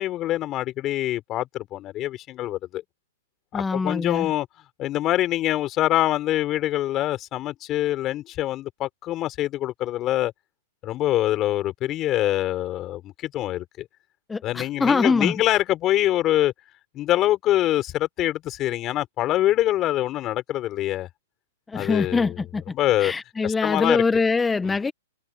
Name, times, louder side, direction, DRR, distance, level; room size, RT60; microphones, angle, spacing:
voice 1, 0.0-2.8 3.5-4.5 4.8-10.3 10.8-13.9 14.4-16.5 16.9-21.1 21.7-22.4 22.7-23.1 23.4-24.0 24.6-24.7, left 14 dB, 30° left, 4.2 m, -24 dB
voice 2, 3.5-4.3 14.3-15.3 21.7-22.6 23.0-24.9, left 4 dB, 10° left, 1.0 m, -23 dB
hypercardioid pair, 115°, 0 cm